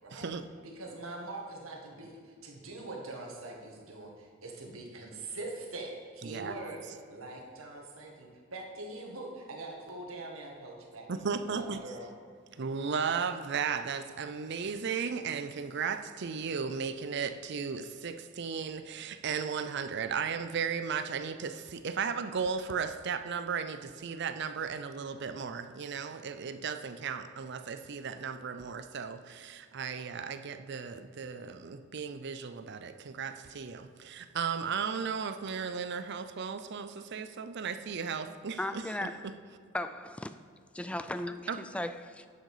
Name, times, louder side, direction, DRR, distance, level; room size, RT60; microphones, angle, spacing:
voice 1, 0.1-0.5 6.2-6.5 11.1-11.8 12.5-39.3 41.5-41.6, right 6 dB, 55° right, 11 dB, 0.5 m, -35 dB
voice 2, 0.6-6.8 7.1-12.1, right 2 dB, 90° right, 0 dB, 1.8 m, -43 dB
voice 3, 38.6-39.2 39.7-40.3 40.7-42.3, left 1 dB, 5° left, 10 dB, 0.3 m, -36 dB
10.5 x 6.5 x 4.9 m, 2.1 s
head